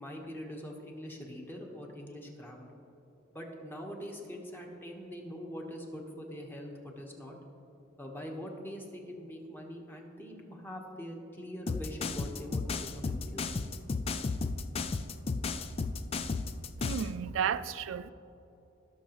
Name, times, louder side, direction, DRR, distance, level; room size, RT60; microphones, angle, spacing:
voice 1, 0.0-2.7 3.3-7.4 8.0-13.4, equal, 10° left, 1.2 m, -43 dB
sound 1, 11.7-17.1, left 4 dB, 30° left, 0.3 m, -33 dB
voice 2, 16.8-18.1, right 7 dB, 70° right, 0.3 m, -33 dB
17.0 x 6.6 x 3.1 m
head